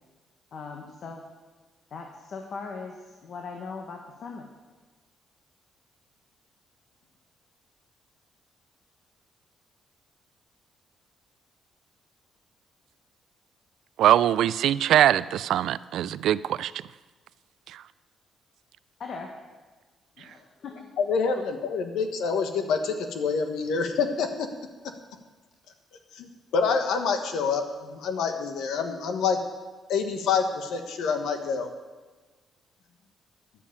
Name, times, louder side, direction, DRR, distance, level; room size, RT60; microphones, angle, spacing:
voice 1, 0.5-1.2 1.9-4.5 19.0-19.3 20.2-20.9, left 4 dB, 60° left, 2 dB, 1.4 m, -39 dB
voice 2, 14.0-16.7, right 11 dB, 80° right, 18 dB, 0.3 m, -22 dB
voice 3, 21.0-24.5 26.1-26.3 26.5-29.4 29.9-31.7, left 5 dB, 80° left, 6 dB, 1.3 m, -27 dB
10.0 x 7.3 x 8.6 m, 1.3 s
cardioid pair, 90°, 0 cm